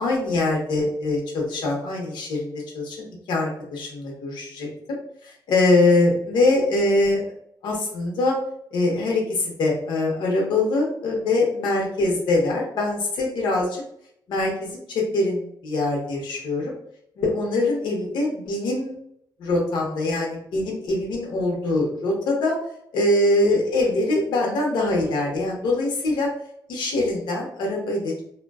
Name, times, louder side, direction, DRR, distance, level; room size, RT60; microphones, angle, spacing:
voice 1, 0.0-5.0 5.2-7.3 7.6-8.4 8.7-13.8 14.3-16.7 17.2-18.9 19.4-22.6 22.9-26.3 26.7-28.1, left 2 dB, 85° left, -1 dB, 0.7 m, -23 dB
2.5 x 2.1 x 2.2 m, 0.73 s
wide cardioid pair, 160°, 8 cm